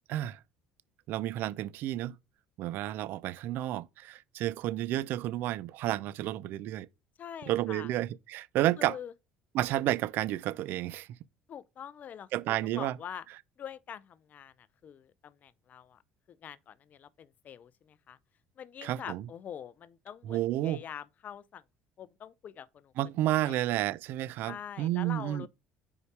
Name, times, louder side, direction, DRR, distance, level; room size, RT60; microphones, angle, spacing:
voice 1, 0.1-0.4 1.1-2.2 2.6-6.9 7.5-9.0 9.5-11.1 12.3-13.0 18.8-19.3 20.2-20.8 23.0-25.5, right 14 dB, 65° right, 0.4 m, -31 dB
voice 2, 7.2-7.9 8.8-9.1 11.5-12.3 12.6-13.2 13.6-14.5 14.8-16.0 16.3-18.2 18.6-21.6 22.0-22.9 23.4-23.6 24.4-25.5, left 9 dB, 50° left, 0.6 m, -45 dB
5.2 x 4.9 x 4.7 m
supercardioid pair, 75°, 4 cm